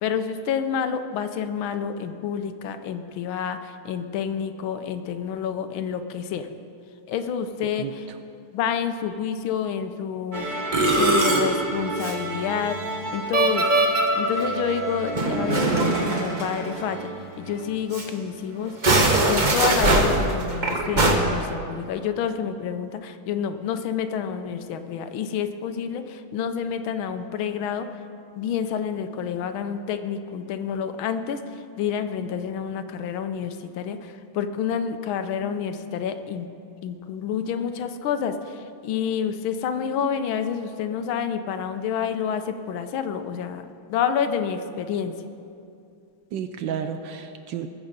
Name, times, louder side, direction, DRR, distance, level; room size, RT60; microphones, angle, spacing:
voice 1, 0.0-6.5 7.1-8.0 8.5-12.8 13.1-13.7 14.1-17.1 17.4-19.0 19.2-28.0 28.4-36.5 36.8-45.1, left 7 dB, 75° left, 9 dB, 1.5 m, -28 dB
voice 2, 7.8-8.2 46.3-47.7, right 8 dB, 70° right, 8 dB, 1.2 m, -32 dB
Musical instrument, 10.3-17.2 17.5-17.6 17.9-18.1 18.7-21.2, right 2 dB, 35° right, 0.8 m, -23 dB
20.5 x 7.2 x 5.1 m, 2.5 s
omnidirectional pair, 2.3 m